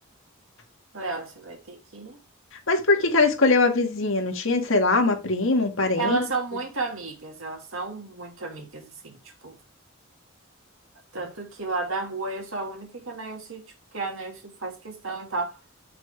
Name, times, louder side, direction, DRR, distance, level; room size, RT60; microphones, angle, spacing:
voice 1, 0.9-2.2 6.0-9.6 11.1-15.6, right 3 dB, 70° right, 2.4 m, -33 dB
voice 2, 2.7-6.2, left 3 dB, 65° left, 1.8 m, -21 dB
8.1 x 6.0 x 3.3 m
head